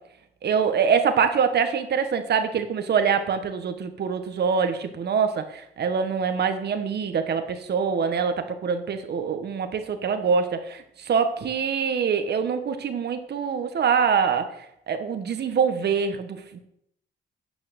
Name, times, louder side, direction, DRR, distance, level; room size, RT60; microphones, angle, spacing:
voice 1, 0.4-14.5 14.9-16.6, right 6 dB, 55° right, 8 dB, 1.3 m, -24 dB
9.0 x 5.7 x 6.8 m, 0.75 s
cardioid pair, 90°, 20 cm